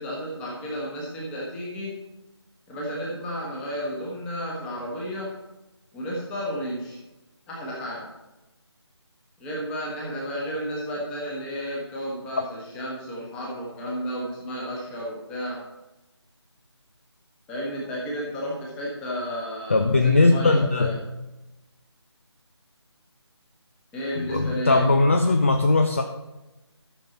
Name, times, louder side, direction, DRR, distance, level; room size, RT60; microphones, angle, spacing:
voice 1, 0.0-2.0 2.7-5.3 5.9-7.0 7.5-8.1 9.4-15.6 17.5-21.0 23.9-24.9, equal, 5° left, -4 dB, 1.3 m, -32 dB
voice 2, 19.7-21.0 24.2-26.0, left 3 dB, 30° left, 5 dB, 0.5 m, -19 dB
13.0 x 6.6 x 4.1 m, 1.0 s
figure-of-eight pair, 155°, 15 cm